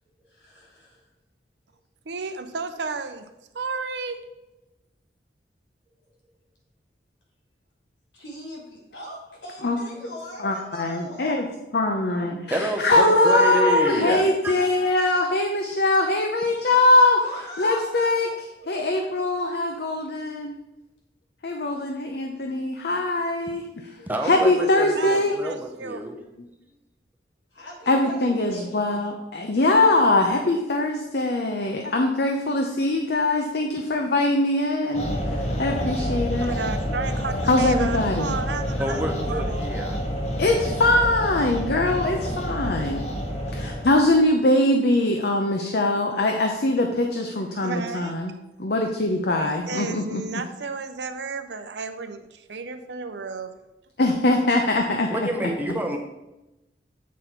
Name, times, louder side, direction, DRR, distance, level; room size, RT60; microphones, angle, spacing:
voice 1, 0.2-1.1 5.9-6.0 8.1-11.5 17.2-17.8 18.2-19.1 27.5-28.9, equal, 85° left, -3 dB, 2.8 m, -41 dB
voice 2, 2.1-3.3 3.5-4.2 12.9-13.9 24.6-24.7 24.9-26.0 36.4-39.7 47.6-48.1 49.3-53.5, right 4 dB, 80° right, 9 dB, 0.6 m, -32 dB
voice 3, 10.4-11.5 11.7-17.2 17.6-20.5 21.4-23.6 24.2-25.3 27.9-36.5 37.5-38.3 40.4-43.0 43.5-48.3 48.6-50.2 54.0-55.1, left 2 dB, 60° left, 3 dB, 0.6 m, -22 dB
voice 4, 12.5-14.5 24.1-26.2 38.8-40.0 55.1-56.0, right 1 dB, 10° right, 2 dB, 0.7 m, -28 dB
sound 1, 34.9-44.2, equal, 40° left, 1.0 m, -28 dB
8.2 x 4.1 x 4.4 m, 0.96 s
head